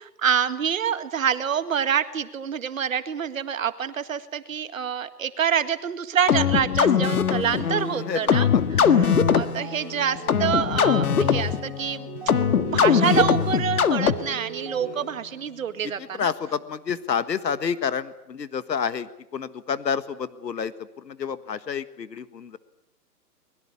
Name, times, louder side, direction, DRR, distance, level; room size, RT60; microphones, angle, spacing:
voice 1, 0.0-8.5 8.8-12.1 12.6-16.3, right 8 dB, 55° right, 11 dB, 1.9 m, -27 dB
sound 1, 6.3-14.5, left 7 dB, 60° left, 1.7 m, -21 dB
voice 2, 7.9-8.6 14.8-15.0 15.8-22.6, left 7 dB, 85° left, 13 dB, 1.7 m, -29 dB
sound 2, 9.5-15.3, right 6 dB, 30° right, 4.5 m, -39 dB
24.0 x 21.5 x 8.5 m, 0.81 s
hypercardioid pair, 165°, 49 cm